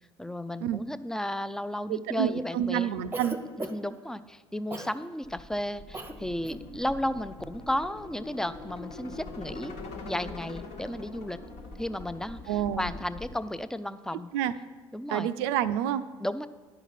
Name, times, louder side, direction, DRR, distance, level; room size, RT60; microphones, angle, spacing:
voice 1, 0.2-2.9 3.7-9.7 10.0-11.4 11.8-14.3 14.9-15.3 16.2-16.5, left 1 dB, 5° left, 13 dB, 0.4 m, -33 dB
voice 2, 1.9-3.4 12.5-12.9 14.3-14.6 15.1-16.1, right 10 dB, 70° right, 13 dB, 0.4 m, -28 dB
Cough, 3.1-4.0 4.7-5.0 5.9-6.2 6.4-6.7, right 1 dB, 15° right, 0.8 m, -37 dB
sound 1, 5.2-13.4, left 2 dB, 60° left, 1.4 m, -43 dB
10.0 x 5.7 x 5.8 m, 1.4 s
hypercardioid pair, 60°, 14 cm